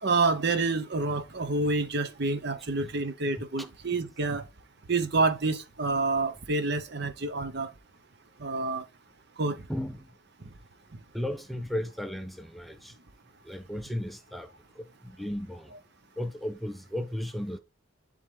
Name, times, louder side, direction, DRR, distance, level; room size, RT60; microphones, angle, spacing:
voice 1, 0.0-4.4 4.9-7.7 8.4-8.8 9.4-9.6 15.7-15.8, right 3 dB, 50° right, 0.8 m, -28 dB
voice 2, 11.1-12.9 13.5-14.5 14.8-15.7 16.2-17.6, left 1 dB, ahead, 0.4 m, -35 dB
11.0 x 3.7 x 3.3 m
head